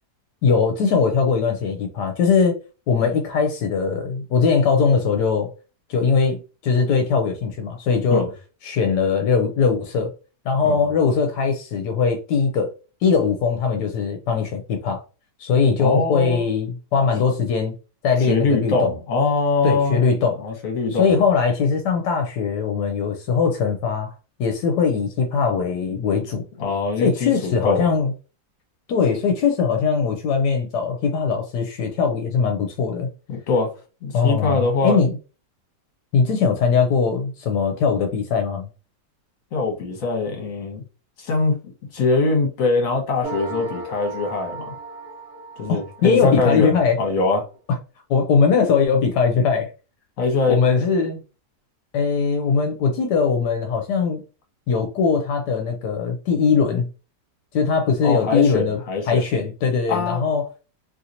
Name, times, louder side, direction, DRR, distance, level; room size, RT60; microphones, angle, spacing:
voice 1, 0.4-2.6 2.9-5.5 5.9-8.2 8.6-10.1 10.5-12.7 13.0-15.0 15.4-17.7 18.0-18.9 19.6-20.4 20.9-26.4 27.0-28.1 28.9-33.1 34.1-35.2 36.1-38.7 45.7-47.0 48.1-49.7 50.5-51.2 51.9-54.2 54.7-56.9 57.5-58.8 59.1-60.5, left 5 dB, 80° left, 1.2 m, -20 dB
voice 2, 15.8-16.4 18.3-20.0 20.4-21.1 26.6-27.9 33.3-33.7 34.0-35.0 39.5-40.8 41.2-41.6 41.9-44.7 45.6-47.5 50.2-50.8 58.0-59.2 59.9-60.2, left 3 dB, 55° left, 1.3 m, -22 dB
sound 1, 43.2-46.6, right 3 dB, 65° right, 1.4 m, -35 dB
3.0 x 2.8 x 2.5 m
omnidirectional pair, 1.8 m